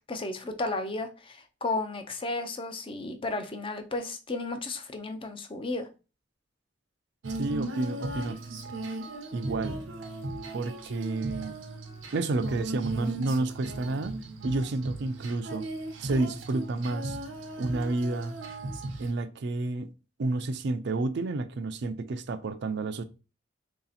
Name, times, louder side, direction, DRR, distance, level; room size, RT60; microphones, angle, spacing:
voice 1, 0.1-5.9, left 2 dB, 30° left, 0.5 m, -33 dB
Female singing, 7.2-19.1, right 2 dB, 85° right, 0.8 m, -37 dB
voice 2, 7.3-8.4 9.3-9.8 10.5-11.6 12.1-14.2 14.4-15.7 16.0-17.2 17.6-18.3 19.0-19.9 20.2-23.0, right 2 dB, 60° right, 0.4 m, -30 dB
3.2 x 2.8 x 4.0 m
head